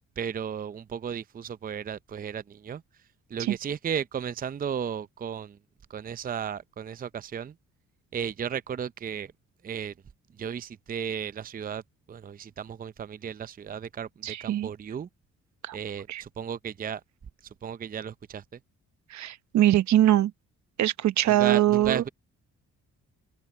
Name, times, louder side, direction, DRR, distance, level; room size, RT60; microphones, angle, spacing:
voice 1, 0.2-2.8 3.3-5.6 5.9-7.5 8.1-9.3 9.6-9.9 10.4-11.8 12.1-15.1 15.7-17.0 17.6-18.4 21.3-22.1, right 7 dB, 30° right, 0.6 m, -34 dB
voice 2, 14.2-14.7 15.6-15.8 16.1-16.2 19.1-20.3 20.8-22.0, right 13 dB, 65° right, 0.9 m, -22 dB
open air
cardioid pair, 90°, 30 cm